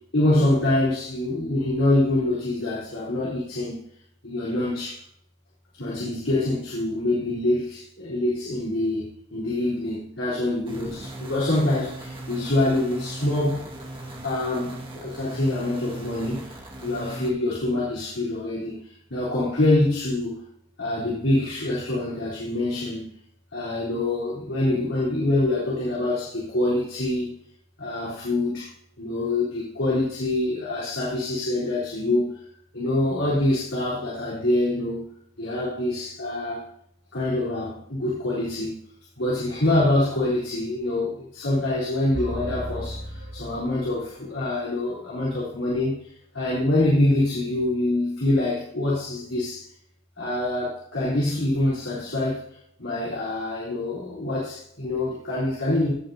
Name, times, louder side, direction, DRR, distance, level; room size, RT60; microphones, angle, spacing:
voice 1, 0.1-3.8 4.2-5.0 5.7-13.7 14.2-20.4 20.8-23.2 23.5-27.3 27.8-28.7 29.0-32.4 32.7-35.1 35.4-36.6 37.1-38.8 39.2-49.6 50.2-52.4 52.8-55.9, left 1 dB, 80° left, -8 dB, 3.9 m, -25 dB
sound 1, 10.7-17.3, right 1 dB, 25° right, 1.9 m, -38 dB
sound 2, 42.1-44.3, equal, 65° right, 1.5 m, -35 dB
17.0 x 6.7 x 2.9 m, 0.69 s
head